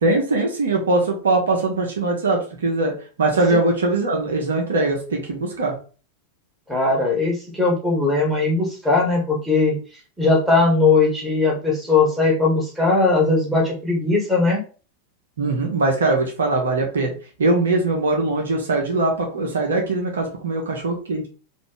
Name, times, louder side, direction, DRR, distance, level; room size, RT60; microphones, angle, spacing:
voice 1, 0.0-2.9 3.2-5.7 15.4-17.1 17.4-21.3, right 2 dB, 65° right, 1 dB, 1.0 m, -21 dB
voice 2, 6.7-9.8 10.2-14.6, left 3 dB, 5° right, -4 dB, 1.9 m, -19 dB
4.1 x 2.7 x 3.4 m, 0.37 s
figure-of-eight pair, 90°, 0 cm